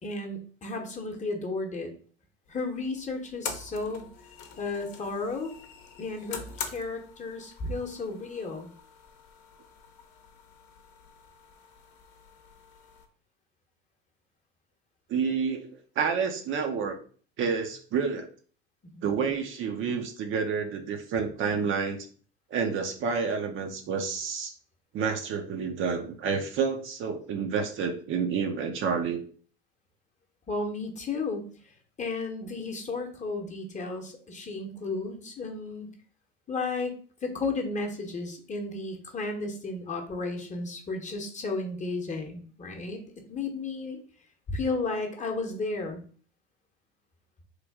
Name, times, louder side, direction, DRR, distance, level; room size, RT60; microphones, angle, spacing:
voice 1, 0.0-1.9 2.5-4.1 4.6-5.5 6.0-8.7 19.0-19.2 30.5-31.5 32.0-35.9 36.5-36.9 37.2-43.0 43.3-44.0 44.5-46.0, left 3 dB, 25° left, 3 dB, 0.9 m, -33 dB
sound 1, 2.5-13.1, left 6 dB, 55° left, 0.8 m, -44 dB
voice 2, 15.1-15.7 16.0-17.0 17.4-18.3 19.0-22.1 22.5-24.5 24.9-29.2, right 6 dB, 45° right, 4 dB, 0.6 m, -29 dB
3.2 x 2.5 x 3.5 m, 0.44 s
hypercardioid pair, 80°, 29 cm